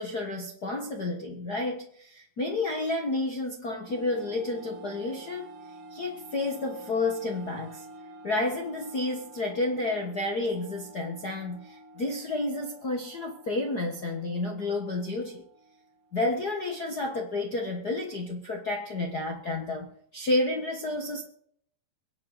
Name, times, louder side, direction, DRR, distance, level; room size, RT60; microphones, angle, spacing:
voice 1, 0.0-5.5 5.9-7.8 8.2-15.4 16.1-21.2, left 2 dB, 75° left, 2 dB, 0.8 m, -30 dB
sound 1, 3.9-16.9, right 2 dB, 55° right, 3.7 m, -49 dB
24.0 x 9.0 x 4.0 m, 0.65 s
omnidirectional pair, 4.4 m